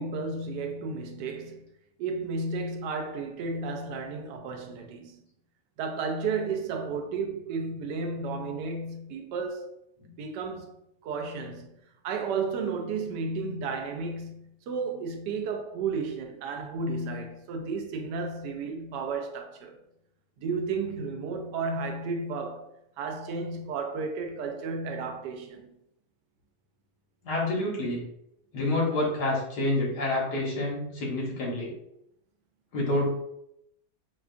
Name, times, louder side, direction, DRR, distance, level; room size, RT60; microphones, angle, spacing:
voice 1, 0.0-1.7 2.0-5.2 5.8-9.7 10.2-10.8 11.0-11.8 12.0-19.8 20.4-22.7 23.0-25.8, right 4 dB, 80° right, 1.2 m, -33 dB
voice 2, 27.2-28.0 28.5-31.7 32.7-33.1, left 1 dB, 75° left, 1.8 m, -28 dB
4.8 x 2.3 x 2.4 m
omnidirectional pair, 1.8 m